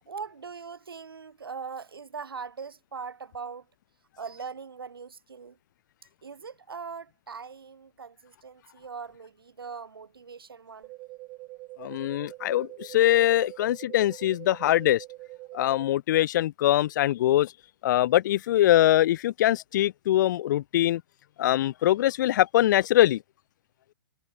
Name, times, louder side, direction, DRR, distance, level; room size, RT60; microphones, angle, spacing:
voice 1, 0.1-3.7 4.2-5.6 6.2-10.9, right 5 dB, 80° right, 2.5 m, -41 dB
sound 1, 10.8-15.8, right 21 dB, 35° right, 3.8 m, -44 dB
voice 2, 11.8-15.0 15.5-17.5 17.8-21.0 21.4-23.2, left 13 dB, 55° left, 0.8 m, -23 dB
figure-of-eight pair, 115°, 12 cm